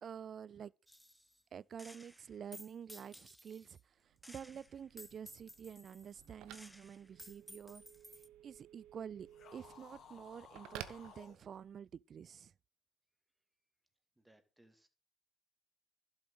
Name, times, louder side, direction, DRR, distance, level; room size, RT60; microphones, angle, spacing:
voice 1, 0.0-0.7 1.5-7.8 8.4-12.5, right 8 dB, 55° right, 0.4 m, -49 dB
Gunshot gunfire, 0.9-1.4 1.8-3.8 4.2-8.3, equal, 5° left, 0.5 m, -56 dB
Telephone, 4.0-11.9, right 13 dB, 80° right, 0.9 m, -55 dB
sound 1, 9.3-11.4, left 7 dB, 65° left, 2.8 m, -57 dB
voice 2, 14.2-14.9, right 1 dB, 10° right, 2.5 m, -67 dB
11.5 x 7.1 x 4.8 m
hypercardioid pair, 60°, 0 cm